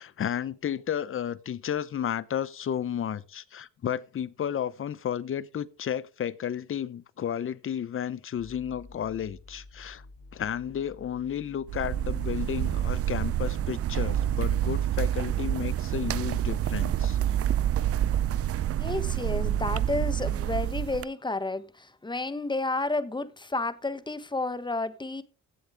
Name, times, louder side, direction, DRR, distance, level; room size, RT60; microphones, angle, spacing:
voice 1, 0.0-10.0 10.3-17.2, left 9 dB, 45° left, 0.8 m, -32 dB
sound 1, 8.3-15.2, left 3 dB, 85° left, 6.3 m, -51 dB
sound 2, 11.7-21.0, right 11 dB, 50° right, 0.5 m, -27 dB
voice 2, 18.8-25.2, left 2 dB, 15° left, 1.1 m, -31 dB
16.0 x 7.1 x 3.5 m
cardioid pair, 90°, 30 cm